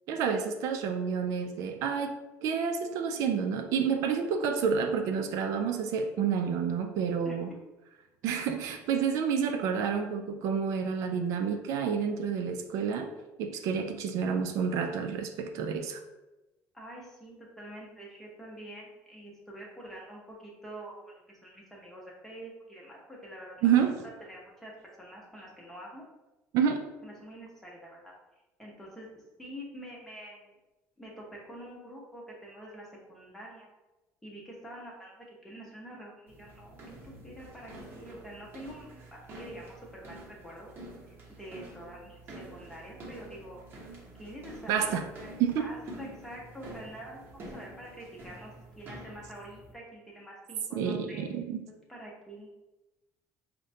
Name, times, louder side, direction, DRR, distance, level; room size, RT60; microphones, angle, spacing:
voice 1, 0.1-2.1 2.4-7.5 8.2-13.1 13.4-16.0 23.6-24.0 26.5-26.9 44.7-45.1 45.4-45.6 50.7-51.6, right 7 dB, 65° right, 6 dB, 0.3 m, -29 dB
voice 2, 16.7-23.8 24.3-24.7 25.0-26.0 27.0-28.1 28.6-30.5 31.0-33.7 34.2-40.7 41.1-43.6 44.2-51.2 51.9-52.5, right 1 dB, 5° left, -3 dB, 0.8 m, -46 dB
sound 1, 36.3-49.7, right 1 dB, 40° right, 0.9 m, -48 dB
5.0 x 2.1 x 2.7 m, 1.0 s
cardioid pair, 150°, 6 cm